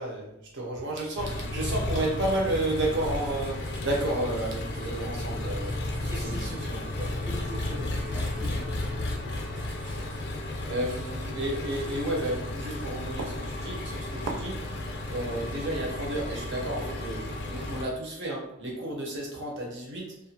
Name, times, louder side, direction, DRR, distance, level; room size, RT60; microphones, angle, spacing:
voice 1, 0.0-7.1 10.6-14.7 15.1-20.2, right 1 dB, 60° right, -2 dB, 0.8 m, -32 dB
Engine, 1.2-17.9, left 1 dB, 55° left, 0.5 m, -33 dB
sound 1, 1.3-15.7, right 3 dB, 80° right, 0.5 m, -47 dB
voice 2, 6.1-6.8 7.3-8.7, equal, 15° right, -4 dB, 0.3 m, -40 dB
2.4 x 2.4 x 2.7 m, 0.75 s
head